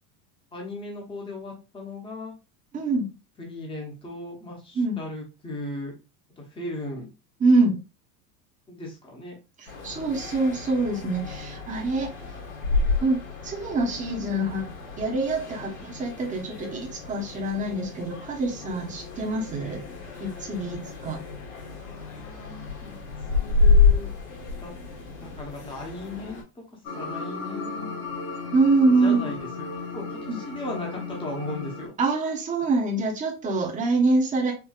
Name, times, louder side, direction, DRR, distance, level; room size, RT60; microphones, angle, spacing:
voice 1, 0.5-2.3 3.4-5.9 6.4-7.1 8.7-9.4 21.7-23.0 23.2-24.1 24.6-24.7 25.2-26.6 27.0-27.9 29.0-29.6 29.9-31.9, left 2 dB, 10° left, 0 dB, 1.0 m, -37 dB
voice 2, 2.7-3.1 4.7-5.0 7.4-7.8 9.6-12.1 13.0-14.7 15.0-19.8 20.2-21.2 28.5-29.3 30.3-30.4 32.0-34.5, right 3 dB, 15° right, -1 dB, 0.9 m, -25 dB
sound 1, 9.7-26.4, left 4 dB, 90° left, 2.2 m, -29 dB
sound 2, 26.8-31.9, left 3 dB, 55° left, 1.9 m, -35 dB
4.5 x 2.6 x 2.3 m, 0.30 s
supercardioid pair, 140°, 45 cm